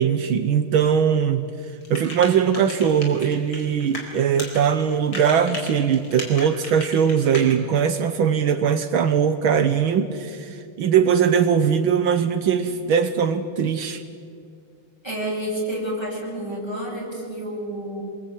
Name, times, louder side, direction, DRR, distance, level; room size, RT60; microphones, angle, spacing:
voice 1, 0.0-1.5 1.9-14.0, right 7 dB, 75° right, 9 dB, 1.8 m, -20 dB
sound 1, 1.8-4.1 4.3-7.5, left 2 dB, 70° left, 5.3 m, -35 dB
voice 2, 15.0-18.0, right 1 dB, 10° left, -3 dB, 7.9 m, -29 dB
27.0 x 22.0 x 9.3 m, 2.3 s
omnidirectional pair, 2.3 m